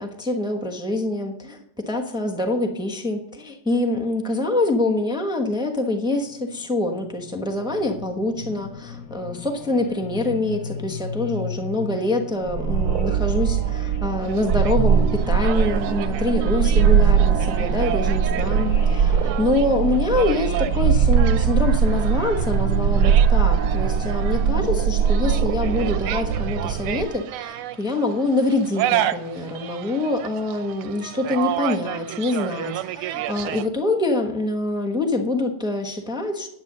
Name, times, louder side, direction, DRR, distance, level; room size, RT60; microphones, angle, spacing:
voice 1, 0.0-1.6 1.9-36.5, left 2 dB, 5° right, 3 dB, 0.4 m, -25 dB
sound 1, 6.2-24.6, left 7 dB, 70° left, 0.8 m, -39 dB
sound 2, 12.5-27.0, right 7 dB, 70° right, 0.9 m, -20 dB
sound 3, 14.2-33.7, right 12 dB, 90° right, 1.5 m, -32 dB
9.6 x 8.7 x 6.6 m, 0.83 s
omnidirectional pair, 2.4 m